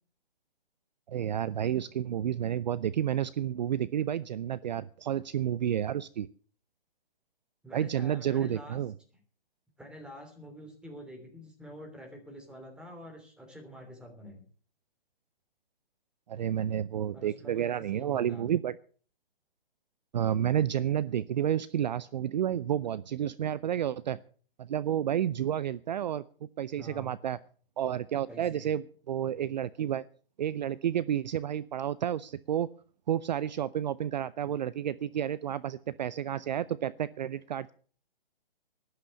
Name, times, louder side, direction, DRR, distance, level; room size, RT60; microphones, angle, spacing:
voice 1, 1.1-6.3 7.7-8.9 16.3-18.7 20.1-24.2 24.6-26.2 26.6-27.4 27.8-30.0 30.4-32.7 33.1-37.7, right 10 dB, 50° right, 18 dB, 0.6 m, -30 dB
voice 2, 7.6-8.8 9.8-14.4 17.1-18.5 26.8-27.1 28.3-28.7 29.3-29.6 34.4-34.5, equal, 5° right, 2 dB, 3.1 m, -47 dB
13.0 x 11.5 x 6.5 m, 0.44 s
hypercardioid pair, 140°, 29 cm